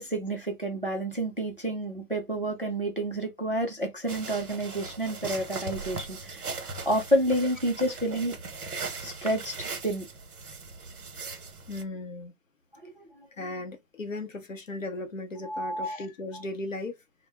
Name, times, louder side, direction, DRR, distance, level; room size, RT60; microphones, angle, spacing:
voice 1, 0.0-8.4 9.0-10.1 12.8-12.9 15.4-16.0 16.3-16.4, right 1 dB, 40° right, 0.5 m, -29 dB
sound 1, 4.1-11.8, right 4 dB, 70° right, 0.8 m, -39 dB
voice 2, 11.7-12.3 13.4-17.0, left 2 dB, 55° left, 0.7 m, -36 dB
2.1 x 2.0 x 3.3 m
hypercardioid pair, 175°, 46 cm